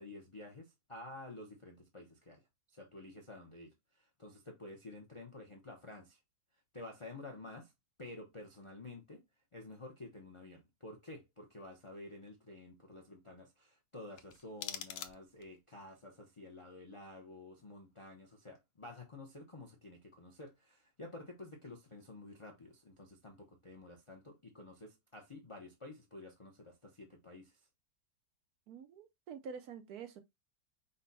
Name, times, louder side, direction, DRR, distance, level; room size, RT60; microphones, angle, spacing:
voice 1, 0.0-2.4 2.7-6.2 6.7-7.7 8.0-9.2 9.5-27.6, left 2 dB, 55° left, 0.3 m, -51 dB
sound 1, 14.1-15.6, left 10 dB, 80° left, 1.3 m, -45 dB
voice 2, 28.7-30.2, right 6 dB, 65° right, 1.0 m, -47 dB
5.2 x 2.2 x 4.0 m
omnidirectional pair, 1.9 m